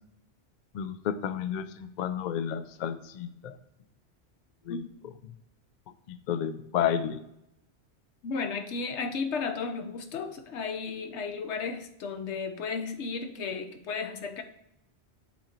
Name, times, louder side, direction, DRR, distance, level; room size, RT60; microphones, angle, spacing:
voice 1, 0.7-3.5 4.7-4.8 6.1-7.2, left 9 dB, 60° left, 11 dB, 0.5 m, -31 dB
voice 2, 8.2-14.4, left 5 dB, 85° left, 7 dB, 1.1 m, -34 dB
7.2 x 3.9 x 4.3 m, 0.82 s
omnidirectional pair, 1.2 m